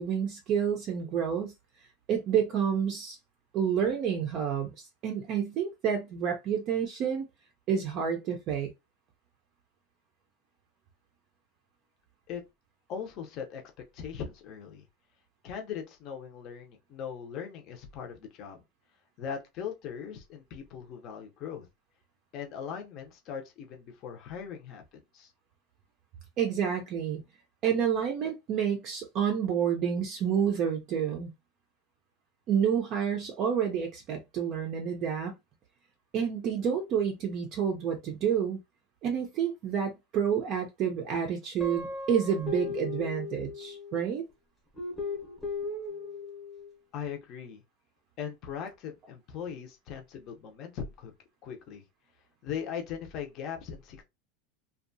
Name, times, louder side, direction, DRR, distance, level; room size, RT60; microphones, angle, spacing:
voice 1, 0.0-1.5 2.1-3.2 3.5-7.2 7.7-8.7 26.4-27.2 27.6-31.3 32.5-35.3 36.1-38.6 39.0-44.2, right 8 dB, 35° right, 0.5 m, -29 dB
voice 2, 12.9-13.6 13.9-14.8 15.4-18.6 19.2-21.7 22.3-25.3 46.9-47.6 48.2-51.1 51.4-51.8 52.4-54.0, left 7 dB, 35° left, 0.6 m, -39 dB
Guitar, 41.6-44.1 44.8-46.7, left 4 dB, 5° left, 0.8 m, -37 dB
2.6 x 2.2 x 2.6 m
supercardioid pair, 160°, 0 cm